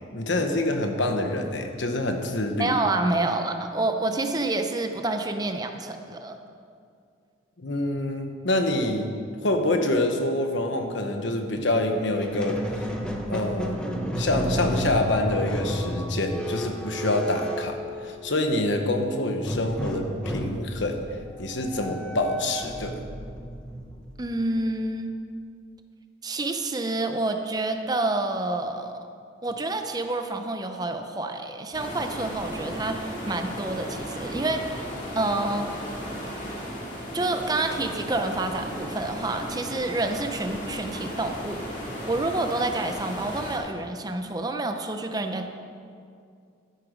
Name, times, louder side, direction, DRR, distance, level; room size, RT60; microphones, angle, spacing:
voice 1, 0.1-2.8 7.6-9.1 9.4-12.6 13.3-13.9 14.2-21.0 21.4-22.9, left 1 dB, 75° left, 5 dB, 1.2 m, -26 dB
voice 2, 2.6-6.3 24.2-25.1 26.2-29.0 29.4-34.9 35.2-35.7 37.1-41.6 42.1-45.5, right 2 dB, 20° right, 6 dB, 0.6 m, -28 dB
Squeak, 12.2-18.5 19.4-24.6, equal, 5° left, 1.0 m, -32 dB
sound 1, 31.7-43.6, equal, 40° left, 2.2 m, -35 dB
12.0 x 9.7 x 5.2 m, 2.4 s
head